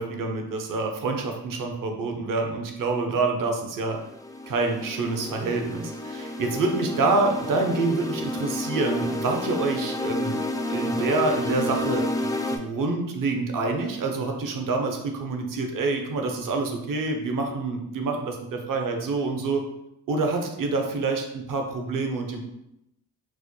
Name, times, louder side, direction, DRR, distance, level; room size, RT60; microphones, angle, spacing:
voice 1, 0.0-4.0 4.5-10.4 10.7-19.6 20.1-22.4, right 3 dB, 50° right, 3 dB, 0.8 m, -27 dB
sound 1, 3.9-12.6, left 1 dB, 10° left, 0.3 m, -30 dB
4.0 x 2.1 x 3.1 m, 0.84 s
supercardioid pair, 60°, 42 cm